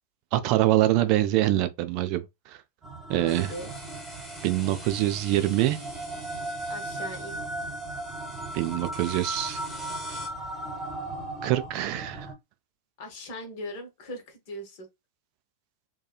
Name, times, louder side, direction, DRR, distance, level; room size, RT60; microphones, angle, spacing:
voice 1, 0.3-2.6 3.1-3.5 4.4-5.8 8.5-9.6 10.1-10.2 11.4-12.3, right 14 dB, 50° right, 0.4 m, -25 dB
sound 1, 2.8-12.3, right 1 dB, 25° right, 0.9 m, -37 dB
voice 2, 3.1-3.9 6.7-7.4 13.0-14.9, equal, 55° left, 1.0 m, -39 dB
sound 2, 3.3-10.3, left 1 dB, 5° left, 1.2 m, -46 dB
2.9 x 2.3 x 2.3 m
hypercardioid pair, 95°, 0 cm